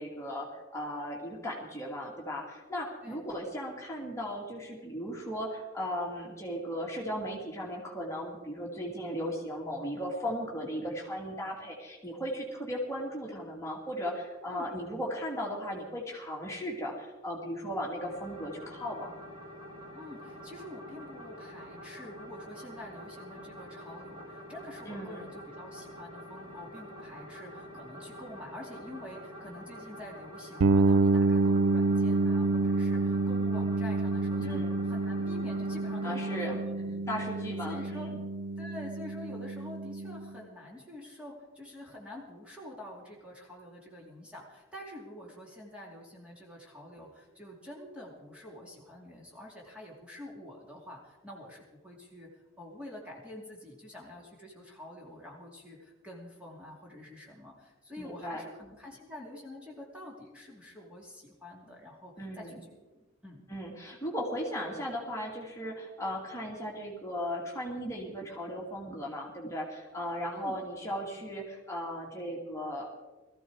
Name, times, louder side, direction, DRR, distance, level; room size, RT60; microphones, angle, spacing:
voice 1, 0.0-19.1 24.8-25.3 34.4-34.8 36.0-36.6 37.1-38.2 58.0-58.4 62.2-62.6 63.5-72.9, equal, 15° left, -2 dB, 2.7 m, -37 dB
sound 1, 18.0-36.6, equal, 25° right, 5.0 m, -47 dB
voice 2, 19.9-37.3 37.6-38.1 38.6-62.8 63.2-63.5 70.3-70.6, left 1 dB, 5° right, -3 dB, 2.6 m, -47 dB
sound 2, 30.6-40.3, right 3 dB, 85° right, 0.5 m, -28 dB
20.5 x 14.5 x 4.8 m, 1.2 s
head